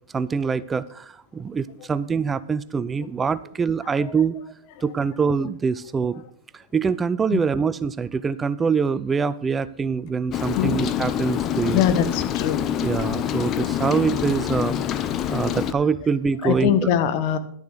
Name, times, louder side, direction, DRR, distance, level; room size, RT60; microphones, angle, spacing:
voice 1, 0.1-4.4 4.8-6.2 6.5-11.8 12.8-16.8, right 5 dB, 15° right, 16 dB, 0.4 m, -24 dB
Rain, 10.3-15.7, left 10 dB, 30° left, 0.7 m, -26 dB
voice 2, 11.7-12.6 16.4-17.4, left 9 dB, 50° left, 12 dB, 1.3 m, -22 dB
11.5 x 7.0 x 6.6 m, 0.63 s
hypercardioid pair, 125°, 0 cm